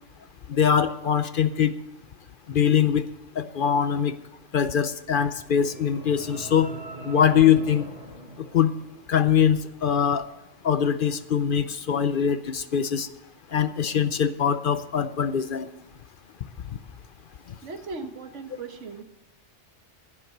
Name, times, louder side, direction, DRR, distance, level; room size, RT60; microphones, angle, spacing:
voice 1, 0.5-1.7 2.5-3.0 3.4-4.1 4.5-6.7 7.0-7.9 8.5-8.7 9.1-10.3 10.6-13.1 13.5-15.7, left 8 dB, 55° left, 12 dB, 0.7 m, -22 dB
sound 1, 5.3-9.4, right 2 dB, 50° right, 3.5 m, -42 dB
voice 2, 17.6-19.0, right 4 dB, 90° right, 7 dB, 1.6 m, -38 dB
11.0 x 11.0 x 6.6 m, 0.99 s
omnidirectional pair, 1.2 m